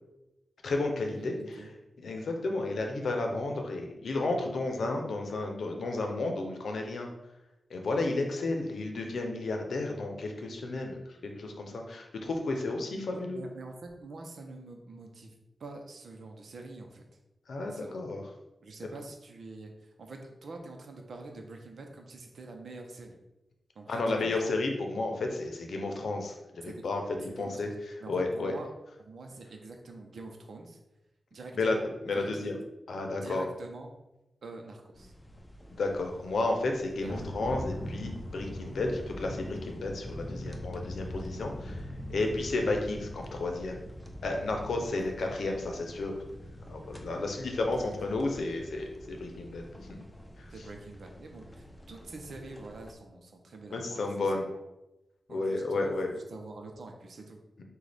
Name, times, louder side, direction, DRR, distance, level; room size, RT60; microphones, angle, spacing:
voice 1, 0.6-1.6 2.0-7.1 7.7-13.4 17.5-18.2 23.9-27.0 27.4-27.7 28.1-28.5 31.5-31.8 32.0-32.6 32.9-33.4 35.7-43.8 44.2-46.1 46.7-49.6 49.9-50.0 50.4-50.5 53.7-54.5 55.3-56.1, left 2 dB, 85° left, 3 dB, 0.7 m, -32 dB
voice 2, 1.2-1.7 13.1-15.3 15.6-17.1 17.6-18.0 18.6-23.2 23.7-24.5 26.6-26.9 27.3-28.7 29.0-30.8 31.3-31.8 32.1-32.6 33.1-33.9 34.4-35.1 37.0-37.3 45.0-45.3 47.7-47.9 50.5-54.1 55.3-57.4, right 3 dB, 80° right, 3 dB, 0.7 m, -45 dB
sound 1, 34.9-52.9, equal, 15° left, 0.6 m, -43 dB
6.3 x 2.4 x 3.4 m, 0.95 s
wide cardioid pair, 90°, 0 cm